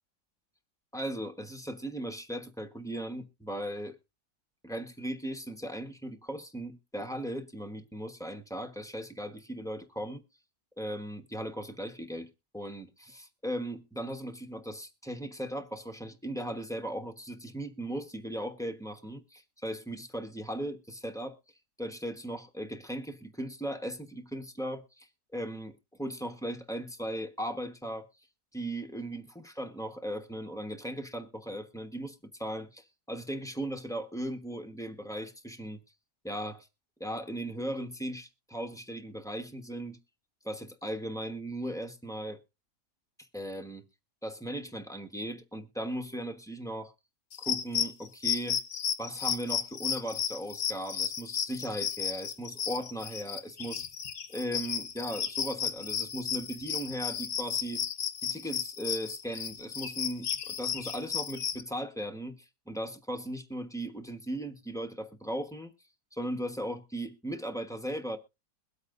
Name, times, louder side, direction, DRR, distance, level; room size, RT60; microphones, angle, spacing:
voice 1, 0.9-3.9 4.6-10.2 10.8-12.9 13.4-21.4 21.8-28.1 28.5-35.8 36.2-36.7 37.0-40.0 40.4-42.4 43.3-43.8 44.2-46.9 47.4-48.6 49.0-53.8 54.3-57.8 58.2-62.4 62.7-65.7 66.1-68.2, right 1 dB, 5° left, 0.8 m, -37 dB
sound 1, 47.3-61.6, left 8 dB, 50° left, 0.9 m, -34 dB
22.5 x 8.3 x 2.5 m
omnidirectional pair, 1.7 m